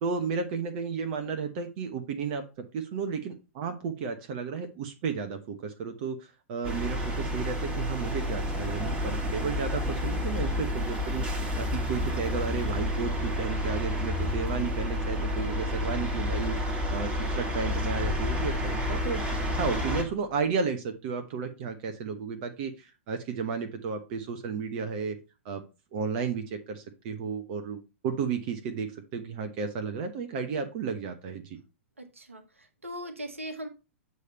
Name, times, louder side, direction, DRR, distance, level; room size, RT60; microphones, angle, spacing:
voice 1, 0.0-19.3 19.6-25.2 25.4-25.6 25.9-31.6, right 5 dB, 40° right, 6 dB, 1.0 m, -33 dB
sound 1, 6.6-20.0, left 1 dB, 15° right, 1.9 m, -30 dB
sound 2, 20.3-20.5, left 4 dB, 5° left, 0.5 m, -41 dB
voice 2, 32.0-33.7, equal, 80° right, 5 dB, 1.4 m, -40 dB
8.1 x 3.3 x 5.4 m, 0.30 s
figure-of-eight pair, 100°, 7 cm